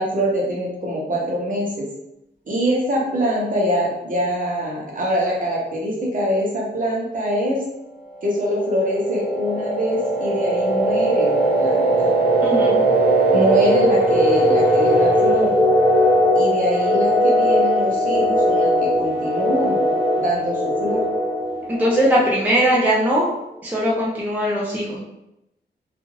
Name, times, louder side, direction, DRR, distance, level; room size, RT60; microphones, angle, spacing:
voice 1, 0.0-1.9 2.5-7.6 8.2-12.1 13.3-15.6 16.4-19.8 20.2-21.1, equal, 45° right, -3 dB, 0.7 m, -23 dB
sound 1, 8.3-22.9, right 1 dB, 30° left, 0.6 m, -19 dB
voice 2, 12.4-12.8 21.7-23.3 23.6-25.0, equal, 10° right, -5 dB, 0.4 m, -20 dB
2.4 x 2.4 x 3.1 m, 0.85 s
wide cardioid pair, 175°, 19 cm